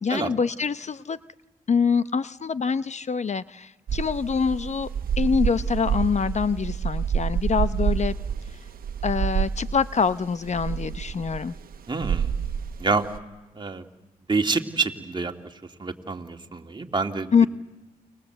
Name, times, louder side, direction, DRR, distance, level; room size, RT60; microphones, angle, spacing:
voice 1, 0.0-1.2 1.7-4.9 5.2-8.1 9.0-11.5 17.3-17.5, left 6 dB, 45° left, 14 dB, 0.8 m, -25 dB
sound 1, 3.9-13.2, right 7 dB, 70° right, 1.2 m, -28 dB
voice 2, 11.9-12.3 12.8-13.0 13.5-13.8 14.3-15.3 15.8-17.5, right 4 dB, 30° right, 4 dB, 2.5 m, -27 dB
29.5 x 23.0 x 8.0 m, 1.2 s
cardioid pair, 55°, 16 cm